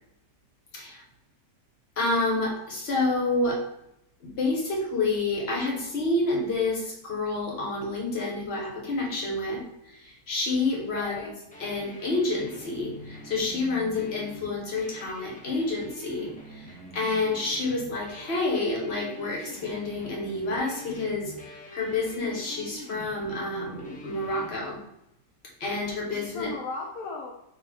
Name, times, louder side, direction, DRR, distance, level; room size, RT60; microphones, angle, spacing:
voice 1, 2.0-3.6 4.2-9.6 9.9-11.3 11.6-24.8 25.6-26.5, left 2 dB, 45° left, -2 dB, 1.1 m, -29 dB
voice 2, 10.8-11.3 13.8-14.1 26.1-27.3, left 3 dB, 70° left, 0 dB, 0.9 m, -36 dB
sound 1, 11.5-24.6, equal, 15° left, 0.3 m, -45 dB
4.1 x 2.6 x 4.3 m, 0.82 s
omnidirectional pair, 1.8 m